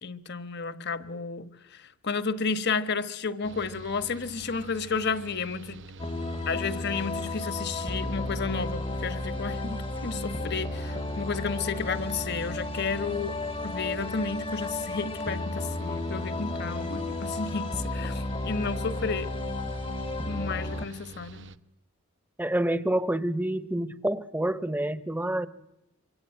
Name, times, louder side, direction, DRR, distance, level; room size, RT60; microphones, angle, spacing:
voice 1, 0.0-5.8 6.5-19.3 20.3-21.5, left 4 dB, 55° left, 1.3 m, -32 dB
Mechanical fan, 3.4-21.6, right 3 dB, 60° right, 1.0 m, -47 dB
sound 1, 6.0-20.9, left 2 dB, 25° left, 0.9 m, -33 dB
voice 2, 22.4-25.5, right 1 dB, 10° right, 0.9 m, -28 dB
26.5 x 24.5 x 9.2 m
head